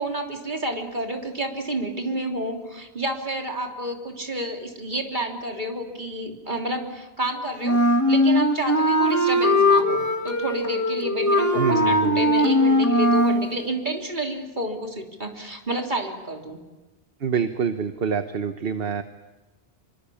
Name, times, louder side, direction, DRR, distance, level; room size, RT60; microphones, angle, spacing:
voice 1, 0.0-7.8 8.1-16.6, right 1 dB, 50° right, 2 dB, 3.6 m, -30 dB
Wind instrument woodwind instrument, 7.6-13.5, left 1 dB, 15° left, 2.4 m, -20 dB
voice 2, 11.5-12.3 17.2-19.0, right 6 dB, 65° right, 8 dB, 1.3 m, -26 dB
27.0 x 24.5 x 8.6 m, 1.1 s
omnidirectional pair, 1.1 m